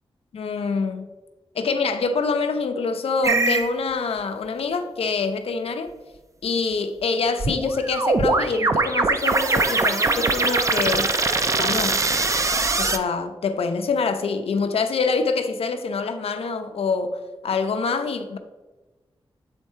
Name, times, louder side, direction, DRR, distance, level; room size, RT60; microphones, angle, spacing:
voice 1, 0.3-1.1 1.5-5.9 6.4-11.2 11.5-12.0 12.8-18.4, left 4 dB, 85° left, 0.6 m, -25 dB
sound 1, 3.2-3.7 7.4-13.0, right 3 dB, 30° right, 0.5 m, -22 dB
8.1 x 3.6 x 4.4 m
wide cardioid pair, 90°, 10 cm